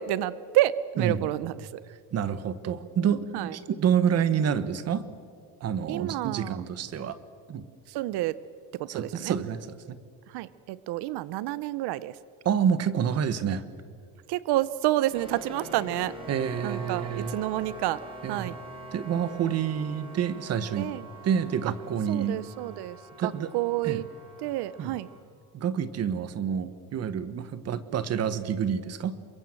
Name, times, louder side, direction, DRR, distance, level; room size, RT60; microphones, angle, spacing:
voice 1, 0.0-1.8 3.3-3.5 5.9-6.6 7.9-8.4 8.7-9.3 10.3-12.2 14.3-16.1 16.6-18.0 18.3-18.5 20.8-21.0 22.1-24.0 24.4-25.1, right 15 dB, 85° right, 17 dB, 0.8 m, -29 dB
voice 2, 1.0-1.3 2.1-5.1 5.6-7.2 7.5-7.6 8.9-10.0 12.4-13.6 16.3-17.4 18.2-18.6 18.9-20.9 21.2-22.4 23.2-23.5 23.8-24.0 24.8-24.9 25.5-29.2, right 8 dB, 40° right, 14 dB, 1.3 m, -28 dB
sound 1, 15.1-25.2, right 1 dB, 15° right, 4.6 m, -44 dB
28.5 x 23.5 x 7.7 m, 2.1 s
cardioid pair, 175°, 38 cm